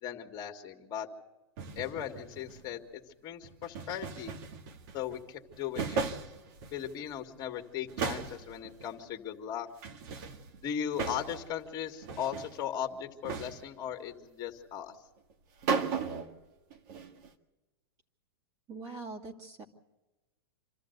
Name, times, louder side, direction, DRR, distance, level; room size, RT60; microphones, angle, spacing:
voice 1, 0.0-1.1 1.8-4.3 4.9-6.0 6.7-9.7 10.6-15.0, left 9 dB, 30° left, 4 dB, 2.2 m, -38 dB
sound 1, 1.6-2.7 3.4-5.2 5.5-7.1 7.4-7.5 7.9-8.9 9.8-11.6 11.8-12.6 13.2-13.8 15.3-15.4 15.6-16.4 16.7-17.3, right 5 dB, 50° right, 1.8 m, -37 dB
voice 2, 18.7-19.6, right 3 dB, 25° right, 1 dB, 2.7 m, -43 dB
26.5 x 13.5 x 8.2 m, 1.1 s
hypercardioid pair, 120°, 13 cm